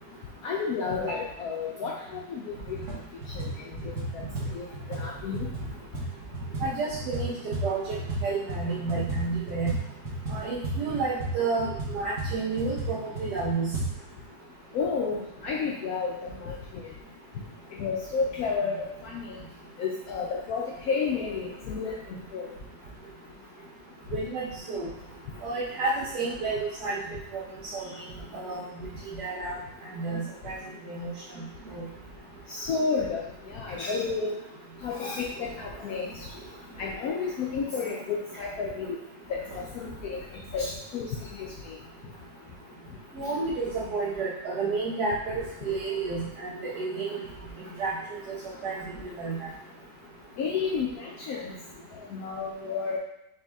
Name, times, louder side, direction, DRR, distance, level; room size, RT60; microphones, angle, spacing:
voice 1, 0.4-2.8 3.3-3.5 4.1-4.2 4.5-5.4 14.7-16.9 17.8-19.4 19.8-22.5 32.5-33.3 33.5-34.4 34.8-36.1 36.8-39.0 39.3-40.2 40.5-41.1 41.4-41.5 50.4-51.5 52.1-53.0, left 5 dB, 70° left, -2 dB, 0.9 m, -31 dB
sound 1, 2.1-2.2 2.6-3.0 3.2-8.2 8.5-13.9, right 2 dB, 45° right, 1.5 m, -33 dB
voice 2, 6.6-7.4 7.6-7.8 8.2-9.7 10.3-13.7 24.1-24.9 25.4-27.0 27.3-27.4 27.7-27.9 28.3-28.7 29.2-29.5 29.9-30.6 30.8-31.1 31.7-31.8 43.1-47.1 47.8-47.9 48.3-48.4 48.6-48.8 49.2-49.5, right 3 dB, 70° right, -7 dB, 1.4 m, -30 dB
4.1 x 3.4 x 3.4 m, 0.87 s
omnidirectional pair, 1.9 m